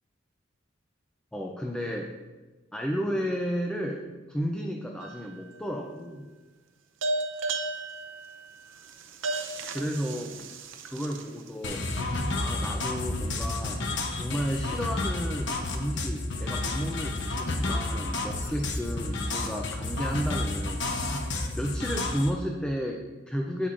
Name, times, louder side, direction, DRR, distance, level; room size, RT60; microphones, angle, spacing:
voice 1, 1.3-2.1 2.7-6.3 9.7-10.4 10.9-21.2 21.5-23.7, equal, 5° left, 1 dB, 0.4 m, -33 dB
sound 1, 5.0-5.6 7.0-11.5, right 2 dB, 70° right, 0.6 m, -34 dB
sound 2, 11.6-22.3, left 2 dB, 65° left, 0.9 m, -31 dB
8.7 x 8.2 x 2.5 m, 1.3 s
head